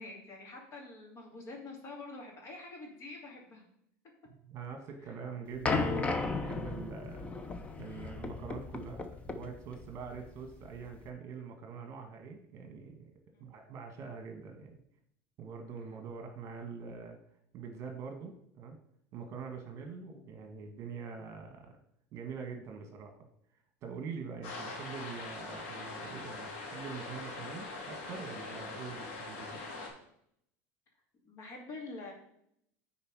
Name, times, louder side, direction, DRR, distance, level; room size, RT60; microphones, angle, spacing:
voice 1, 0.0-3.6 5.0-5.1 13.3-13.5 31.2-32.1, left 3 dB, 40° left, 1 dB, 2.6 m, -46 dB
voice 2, 4.4-7.2 7.8-13.1 13.4-14.7 15.4-17.2 17.5-18.8 19.1-21.7 22.1-23.2 23.8-29.6, right 5 dB, 45° right, 4 dB, 1.6 m, -44 dB
sound 1, 5.6-11.1, left 3 dB, 15° left, 0.8 m, -35 dB
sound 2, 24.4-29.9, left 3 dB, 90° left, 2.9 m, -42 dB
9.8 x 4.4 x 4.8 m, 0.72 s
supercardioid pair, 140°, 7 cm